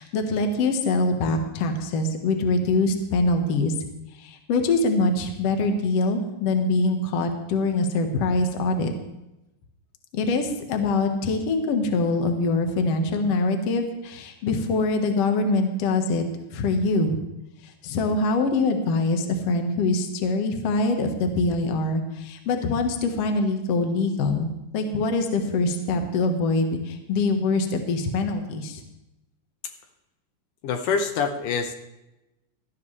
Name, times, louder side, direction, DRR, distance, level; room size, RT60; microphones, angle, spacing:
voice 1, 0.0-3.7 4.2-8.9 10.1-16.2 16.5-17.2 17.8-28.8, left 3 dB, 55° left, 5 dB, 2.0 m, -24 dB
voice 2, 30.6-31.8, left 5 dB, 75° left, 6 dB, 2.4 m, -25 dB
18.0 x 12.5 x 3.2 m, 0.94 s
omnidirectional pair, 3.9 m